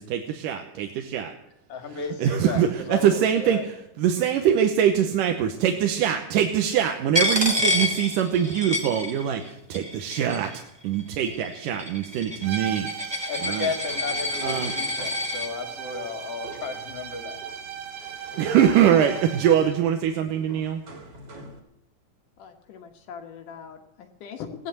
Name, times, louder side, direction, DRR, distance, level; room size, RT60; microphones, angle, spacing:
voice 1, 0.0-1.3 1.9-10.5 10.8-13.7 14.4-14.7 18.4-20.8, right 9 dB, 90° right, 5 dB, 2.6 m, -23 dB
voice 2, 1.7-3.6 13.3-17.4, left 4 dB, 50° left, 5 dB, 3.1 m, -34 dB
Coin (dropping), 7.1-9.5 9.7-10.6 11.3-15.5, left 1 dB, 10° right, 1.3 m, -28 dB
sound 1, 12.4-19.8, right 8 dB, 65° right, 1.8 m, -37 dB
sound 2, 13.8-21.6, right 2 dB, 35° right, 2.6 m, -44 dB
voice 3, 22.4-24.7, left 7 dB, 75° left, 4 dB, 2.8 m, -40 dB
16.5 x 11.0 x 7.9 m, 0.83 s
omnidirectional pair, 3.7 m